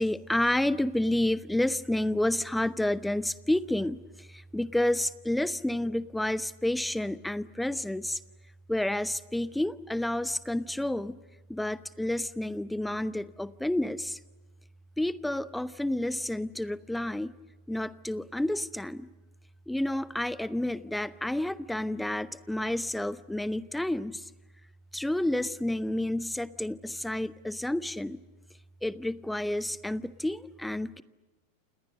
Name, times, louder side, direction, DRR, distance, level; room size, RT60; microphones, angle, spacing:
voice 1, 0.0-8.2 8.7-11.2 11.5-14.2 15.0-17.3 17.7-19.1 19.7-24.3 24.9-28.2 28.8-31.0, left 1 dB, 5° left, 17 dB, 0.9 m, -30 dB
30.0 x 28.5 x 6.6 m, 1.2 s
figure-of-eight pair, 90°, 0 cm